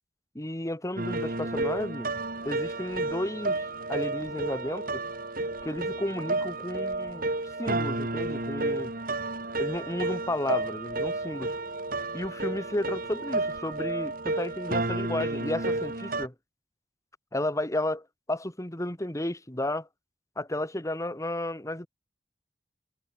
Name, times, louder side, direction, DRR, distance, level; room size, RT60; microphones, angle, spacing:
voice 1, 0.3-2.1 2.4-5.0 5.6-7.3 7.6-8.9 9.6-11.5 12.1-16.3 17.3-19.9 20.4-21.9, left 1 dB, 20° left, 2.1 m, -33 dB
sound 1, 1.0-16.3, right 2 dB, 55° right, 4.3 m, -31 dB
head